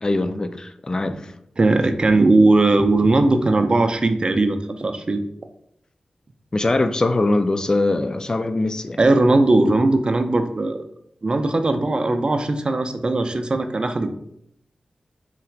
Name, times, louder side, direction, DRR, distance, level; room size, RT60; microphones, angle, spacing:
voice 1, 0.0-1.3 6.5-9.0, left 2 dB, 30° left, 0.3 m, -22 dB
voice 2, 1.6-5.2 9.0-10.8 11.2-14.1, right 2 dB, 40° right, 0.4 m, -18 dB
3.8 x 2.4 x 4.4 m
wide cardioid pair, 105°, 2 cm